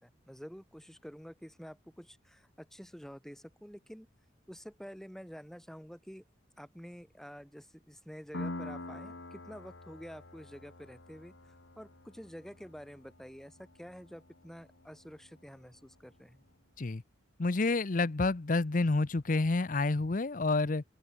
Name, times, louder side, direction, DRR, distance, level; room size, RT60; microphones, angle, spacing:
voice 1, 0.0-4.1 4.5-6.2 6.6-11.3 11.8-16.4, equal, ahead, 5.6 m, -49 dB
Piano, 8.3-15.7, left 2 dB, 75° left, 2.3 m, -46 dB
voice 2, 17.4-20.8, left 3 dB, 45° left, 0.7 m, -29 dB
open air
head